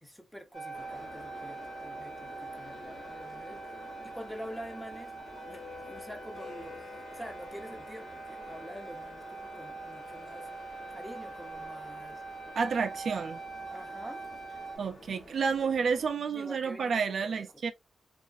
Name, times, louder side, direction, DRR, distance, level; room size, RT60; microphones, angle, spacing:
voice 1, 0.0-10.5 10.9-12.2 13.7-14.2 15.6-15.7 16.3-17.5, equal, 5° left, 0.6 m, -46 dB
sound 1, 0.5-14.8, right 3 dB, 80° left, 1.4 m, -43 dB
sound 2, 0.7-16.1, left 1 dB, 35° left, 1.0 m, -51 dB
sound 3, 6.3-12.8, left 3 dB, 65° left, 0.9 m, -57 dB
voice 2, 12.6-13.4 14.8-17.7, right 5 dB, 65° right, 0.3 m, -30 dB
3.0 x 2.4 x 2.4 m
wide cardioid pair, 145°, 0 cm